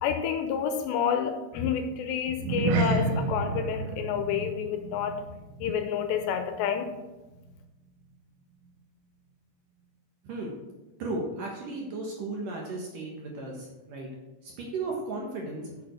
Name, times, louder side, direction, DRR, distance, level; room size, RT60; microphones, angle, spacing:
voice 1, 0.0-5.2 5.6-6.9, left 7 dB, 80° left, 7 dB, 2.8 m, -29 dB
sound 1, 2.3-7.0 7.2-7.5 8.0-8.1, right 3 dB, 80° right, 3.2 m, -31 dB
voice 2, 11.0-14.1 14.4-15.7, right 2 dB, 60° right, -1 dB, 2.4 m, -35 dB
8.5 x 7.0 x 6.4 m, 1.1 s
omnidirectional pair, 5.3 m